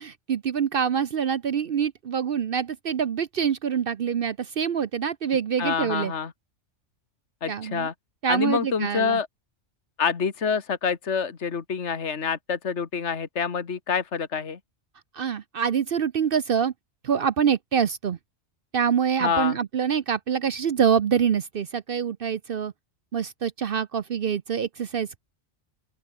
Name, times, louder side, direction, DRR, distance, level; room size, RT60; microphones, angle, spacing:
voice 1, 0.0-6.1 7.5-7.9 8.2-9.2 15.1-16.7 17.0-18.2 18.7-22.7 23.1-25.2, right 7 dB, 55° right, 0.8 m, -25 dB
voice 2, 5.6-6.3 7.4-7.9 8.3-9.3 10.0-14.6 19.2-19.6, left 6 dB, 70° left, 1.9 m, -27 dB
open air
omnidirectional pair, 1.2 m